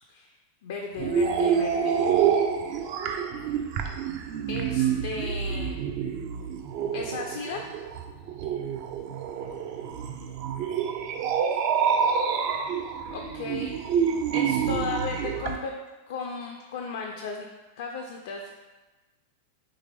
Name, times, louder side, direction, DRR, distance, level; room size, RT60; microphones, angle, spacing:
voice 1, 0.6-2.0 4.5-5.8 6.9-7.7 13.1-13.7 14.3-15.7 16.1-17.4 17.8-18.5, left 4 dB, 55° left, 2 dB, 0.3 m, -35 dB
sound 1, 1.0-15.6, right 7 dB, 45° right, 0.3 m, -27 dB
3.5 x 3.0 x 3.2 m, 1.2 s
figure-of-eight pair, 90°, 0 cm